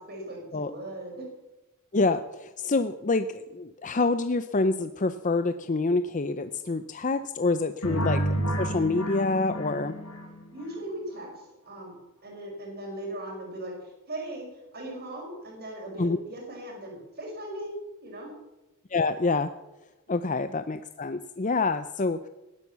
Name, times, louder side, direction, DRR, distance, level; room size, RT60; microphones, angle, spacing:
voice 1, 0.1-1.2 7.9-8.0 10.5-11.9 12.2-17.7 18.0-18.3 20.2-20.4, right 1 dB, 45° right, 0 dB, 5.7 m, -39 dB
voice 2, 1.9-8.2 8.6-9.9 16.0-16.2 18.9-19.5 20.1-22.3, left 3 dB, 35° left, 10 dB, 0.6 m, -27 dB
sound 1, 7.8-10.7, right 1 dB, 90° left, 5.3 m, -30 dB
18.5 x 11.0 x 7.0 m, 1.0 s
head